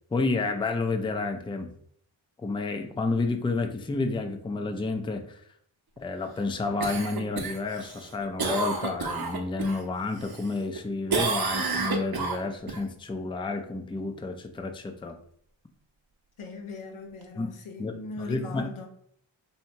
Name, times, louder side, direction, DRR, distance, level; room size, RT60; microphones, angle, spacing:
voice 1, 0.1-1.7 2.4-5.4 6.0-15.2 17.4-17.5 17.8-18.7, left 3 dB, 10° left, 0.4 m, -30 dB
Cough, 6.8-9.8 10.2-10.8 11.1-12.8 17.2-17.3, right 4 dB, 50° right, 0.8 m, -30 dB
voice 2, 16.4-18.9, left 3 dB, 85° left, 0.9 m, -40 dB
2.8 x 2.7 x 4.3 m
cardioid pair, 60°, 48 cm